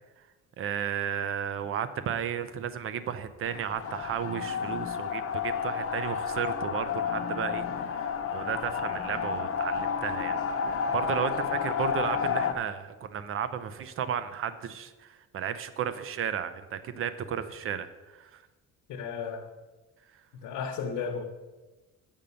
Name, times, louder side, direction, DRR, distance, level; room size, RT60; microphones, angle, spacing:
voice 1, 0.6-10.4 10.9-18.3, right 8 dB, 45° right, 12 dB, 0.6 m, -33 dB
sound 1, 3.5-12.5, left 7 dB, 45° left, 0.7 m, -31 dB
voice 2, 18.9-19.4 20.3-21.2, left 6 dB, 85° left, 0 dB, 1.0 m, -34 dB
7.3 x 5.2 x 6.8 m, 1.2 s
cardioid pair, 160°, 31 cm